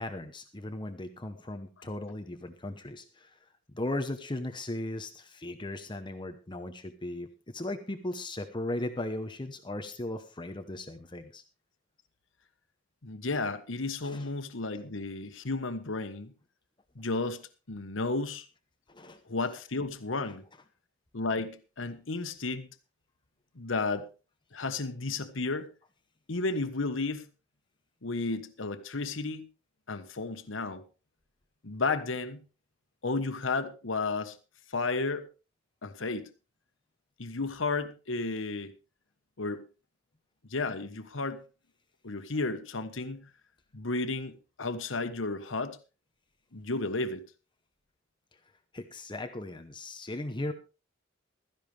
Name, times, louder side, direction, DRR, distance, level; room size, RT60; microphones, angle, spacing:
voice 1, 0.0-3.4 3.7-11.4 14.0-14.3 18.9-19.2 48.7-50.5, left 1 dB, 25° left, 1.0 m, -37 dB
voice 2, 13.0-16.3 16.9-18.5 19.3-20.4 21.1-22.7 23.5-24.1 24.5-25.7 26.3-27.2 28.0-29.4 29.9-30.8 31.6-32.4 33.0-34.4 34.7-35.3 35.8-36.3 37.2-38.7 39.4-39.6 40.5-41.4 42.0-43.3 43.7-45.8 46.5-47.2, left 3 dB, 80° left, 1.2 m, -33 dB
16.0 x 13.5 x 3.4 m
head